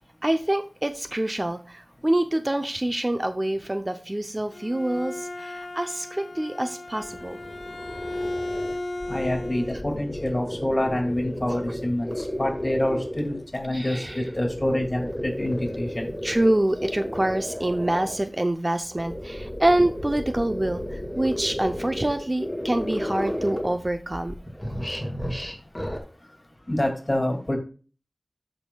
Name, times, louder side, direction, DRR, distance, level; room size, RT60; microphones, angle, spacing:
voice 1, 0.2-7.4 11.5-11.6 13.7-14.2 16.2-24.4, right 1 dB, 35° right, 8 dB, 0.6 m, -26 dB
Bowed string instrument, 4.3-9.9, left 1 dB, 85° left, 0.5 m, -35 dB
sound 1, 6.9-13.5 13.9-18.3 18.8-24.0 24.3-26.0, equal, 10° left, 1.9 m, -33 dB
voice 2, 9.1-16.1 26.7-27.6, left 1 dB, 35° left, 3 dB, 2.4 m, -27 dB
13.5 x 5.4 x 2.3 m, 0.37 s
wide cardioid pair, 50°, 0 cm